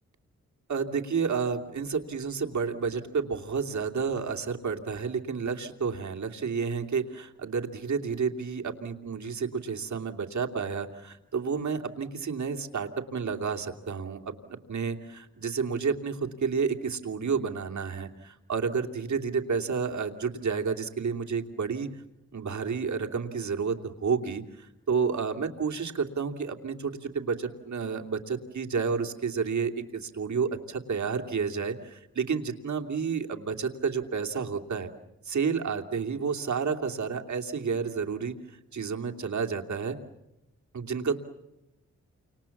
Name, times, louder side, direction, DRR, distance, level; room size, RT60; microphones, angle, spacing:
voice 1, 0.7-21.9 22.3-34.9 35.2-40.0 40.7-41.2, right 5 dB, 65° right, 4 dB, 2.9 m, -30 dB
29.0 x 27.0 x 7.3 m, 0.92 s
cardioid pair, 50°, 30 cm